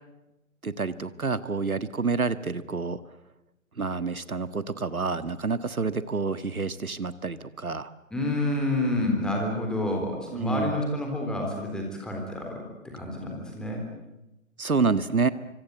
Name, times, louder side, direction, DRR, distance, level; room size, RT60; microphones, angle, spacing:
voice 1, 0.6-3.0 3.8-7.9 10.3-10.8 14.6-15.3, right 4 dB, 85° right, 13 dB, 1.7 m, -28 dB
voice 2, 8.1-12.6 12.9-13.8, left 1 dB, ahead, 1 dB, 3.7 m, -29 dB
25.5 x 25.0 x 8.0 m, 0.95 s
figure-of-eight pair, 150°, 42 cm